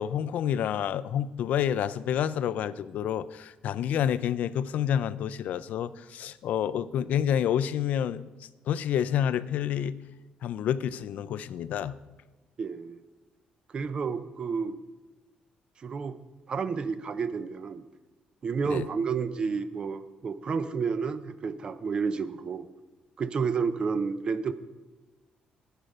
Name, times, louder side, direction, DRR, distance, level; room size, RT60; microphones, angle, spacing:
voice 1, 0.0-8.2 8.7-9.9 10.4-11.9 18.6-18.9, left 9 dB, 65° left, 15 dB, 0.4 m, -28 dB
voice 2, 12.6-13.0 13.7-14.8 15.8-16.2 16.5-17.8 18.4-22.7 23.2-24.5, right 5 dB, 35° right, 12 dB, 0.6 m, -30 dB
11.0 x 9.0 x 5.4 m, 1.2 s
cardioid pair, 165°, 3 cm